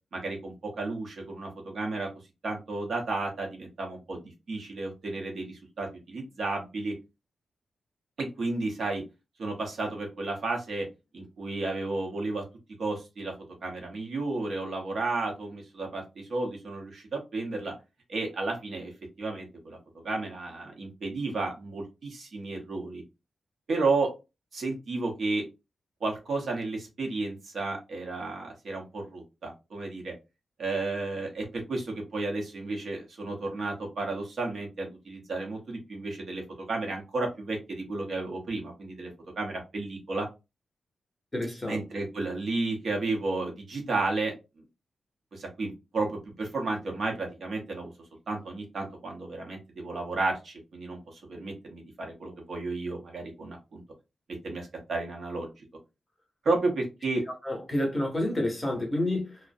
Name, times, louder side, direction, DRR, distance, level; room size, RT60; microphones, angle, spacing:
voice 1, 0.1-2.1 2.4-6.9 8.2-9.0 9.4-10.9 11.1-12.4 12.8-13.3 13.6-17.7 18.1-18.9 19.2-19.8 20.0-23.0 23.7-24.1 24.5-25.4 26.0-30.1 30.6-39.1 39.4-40.3 41.6-44.3 45.3-47.9 48.3-53.8 54.4-55.7 56.4-57.2, right 3 dB, 55° right, 0.7 m, -32 dB
voice 2, 41.3-41.8 57.4-59.4, left 1 dB, 15° left, 0.7 m, -29 dB
2.4 x 2.1 x 2.5 m
wide cardioid pair, 180°, 0 cm